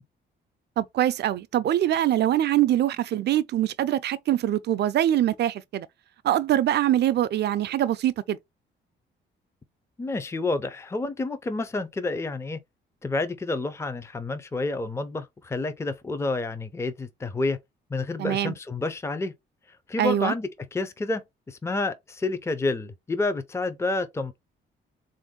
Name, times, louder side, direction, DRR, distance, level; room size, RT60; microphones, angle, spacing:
voice 1, 0.8-5.9 6.2-8.4 18.2-18.5 20.0-20.3, right 12 dB, 60° right, 0.4 m, -23 dB
voice 2, 10.0-12.6 13.0-17.6 17.9-19.3 19.9-24.4, left 3 dB, 15° left, 0.5 m, -29 dB
3.4 x 2.6 x 3.7 m
cardioid pair, 90°, 20 cm